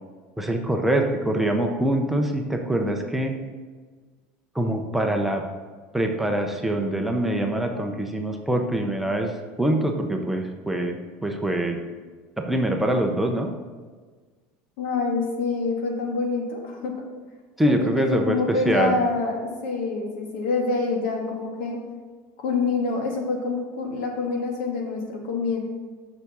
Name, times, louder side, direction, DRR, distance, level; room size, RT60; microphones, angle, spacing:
voice 1, 0.4-3.4 4.5-5.4 5.9-11.0 11.2-11.8 12.4-13.5 17.6-19.0, right 1 dB, 5° right, 2 dB, 0.6 m, -24 dB
voice 2, 14.8-16.9 17.6-21.8 22.4-25.6, left 4 dB, 80° left, 0 dB, 2.1 m, -26 dB
6.7 x 6.1 x 6.8 m, 1.5 s
cardioid pair, 160°, 6 cm